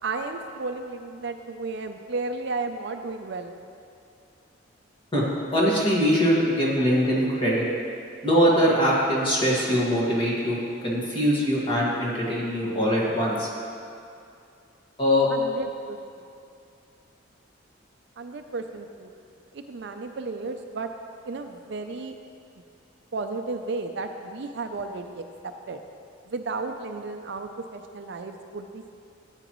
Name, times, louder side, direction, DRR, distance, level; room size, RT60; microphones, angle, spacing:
voice 1, 0.0-3.5 15.3-16.2 18.2-19.1 19.5-20.9 21.2-22.2 23.1-25.8 26.3-28.9, right 3 dB, 60° right, 6 dB, 0.5 m, -33 dB
voice 2, 5.5-7.6 8.2-10.6 10.8-13.5 15.0-15.3, equal, 25° left, -5 dB, 1.8 m, -22 dB
13.0 x 8.9 x 3.1 m, 2.5 s
head